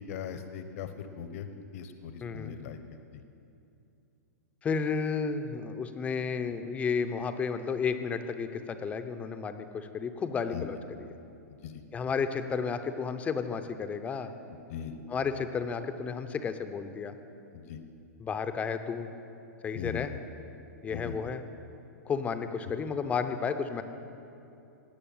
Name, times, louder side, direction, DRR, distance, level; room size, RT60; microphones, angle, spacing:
voice 1, 0.0-1.5 1.7-3.2 10.5-10.6 11.5-11.8 14.5-14.9 17.5-17.8 19.7-20.1 20.9-21.1, left 8 dB, 55° left, 9 dB, 1.0 m, -40 dB
voice 2, 2.2-2.5 4.6-11.1 11.9-14.4 15.1-17.1 18.2-19.1 19.6-20.1 20.8-21.4 22.1-23.8, left 5 dB, 15° left, 9 dB, 0.7 m, -32 dB
18.0 x 6.9 x 8.8 m, 2.7 s
hypercardioid pair, 145°, 9 cm